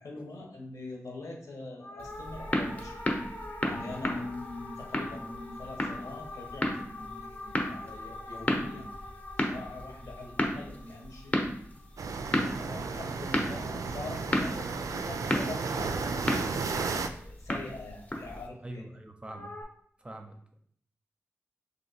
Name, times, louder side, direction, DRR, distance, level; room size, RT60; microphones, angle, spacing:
voice 1, 0.0-2.9 3.6-8.9 9.4-11.4 12.4-18.8, left 2 dB, 80° left, 0 dB, 1.2 m, -43 dB
sound 1, 1.8-12.3 19.2-19.6, left 2 dB, 55° left, 0.9 m, -44 dB
sound 2, 2.0-18.5, left 1 dB, 25° left, 0.7 m, -34 dB
sound 3, 12.0-17.1, right 4 dB, 85° right, 0.3 m, -33 dB
voice 2, 18.6-19.5 20.0-20.6, right 1 dB, 20° right, 4 dB, 0.5 m, -44 dB
3.3 x 2.9 x 4.1 m, 0.62 s
wide cardioid pair, 85°, 6 cm